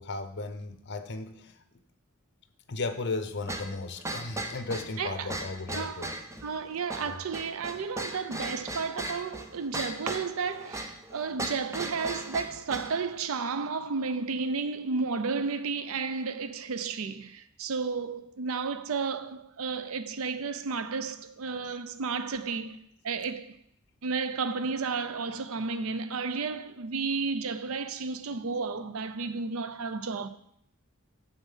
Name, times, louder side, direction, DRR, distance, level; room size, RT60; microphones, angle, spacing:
voice 1, 0.0-1.5 2.7-6.1 7.1-7.2, left 3 dB, 55° left, 0.8 m, -35 dB
sound 1, 3.5-13.0, right 1 dB, 15° right, 0.8 m, -37 dB
voice 2, 5.0-5.4 5.7-6.1 6.4-23.6 24.0-30.3, right 4 dB, 85° right, 0.5 m, -32 dB
7.1 x 7.0 x 5.6 m
head